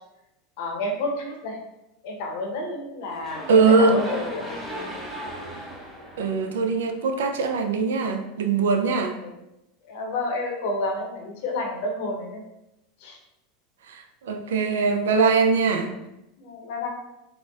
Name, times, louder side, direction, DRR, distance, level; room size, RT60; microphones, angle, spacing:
voice 1, 0.6-1.6 2.0-4.4 9.2-9.3 9.9-12.4 13.0-13.2 16.4-16.9, left 2 dB, 70° left, 1 dB, 0.7 m, -30 dB
sound 1, 3.0-7.2, equal, 5° right, 1.3 m, -36 dB
voice 2, 3.5-4.1 6.2-9.2 13.9-15.9, right 4 dB, 85° right, 5 dB, 0.3 m, -21 dB
4.0 x 2.1 x 2.3 m, 0.90 s
hypercardioid pair, 100°, 0 cm